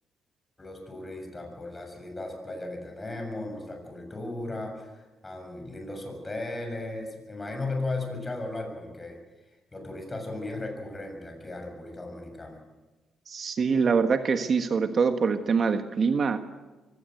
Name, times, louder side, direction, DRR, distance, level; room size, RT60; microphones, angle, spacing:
voice 1, 0.6-9.2 9.7-12.6, left 2 dB, 20° left, 3 dB, 7.0 m, -36 dB
voice 2, 13.3-16.4, right 5 dB, 50° right, 8 dB, 1.4 m, -24 dB
23.5 x 18.0 x 7.9 m, 1.2 s
cardioid pair, 90°, 0 cm